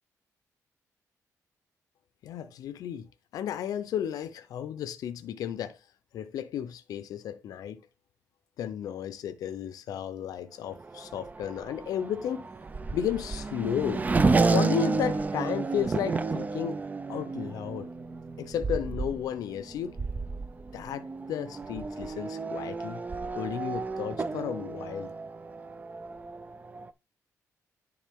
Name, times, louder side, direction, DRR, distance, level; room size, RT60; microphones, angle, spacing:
voice 1, 2.2-3.1 3.3-5.8 6.1-7.8 8.6-12.5 12.9-14.0 14.5-16.8 17.1-17.9 18.4-20.0 20.7-23.0 23.3-25.1, left 9 dB, 85° left, 0.6 m, -33 dB
Race car auto racing / Accelerating revving vroom, 10.7-26.9, right 4 dB, 25° right, 0.5 m, -31 dB
10.0 x 3.8 x 3.6 m
cardioid pair, 110°, 6 cm